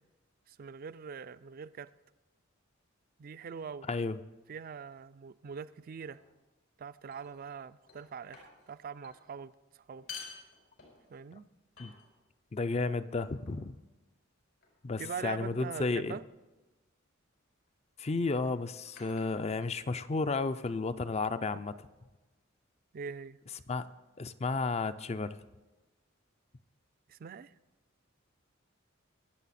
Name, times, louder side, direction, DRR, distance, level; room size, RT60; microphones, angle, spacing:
voice 1, 0.5-1.9 3.2-3.9 4.5-6.2 6.8-9.5 9.9-10.0 11.1-11.5 15.0-16.2 22.9-23.4 27.1-27.5, right 6 dB, 45° right, 15 dB, 0.4 m, -43 dB
voice 2, 3.9-4.2 11.8-11.9 12.5-13.8 14.8-16.2 18.0-21.9 23.7-23.9 24.2-25.4, left 3 dB, 30° left, 13 dB, 0.4 m, -32 dB
sound 1, 6.0-6.3 7.1-7.6 7.9-8.7 9.0-9.2 9.9-11.2 11.8-12.4 13.2-13.7 14.6-14.9 15.6-16.0 17.2-17.4 18.3-20.0, left 6 dB, 80° left, 4.9 m, -51 dB
23.0 x 7.8 x 4.2 m, 1.1 s
head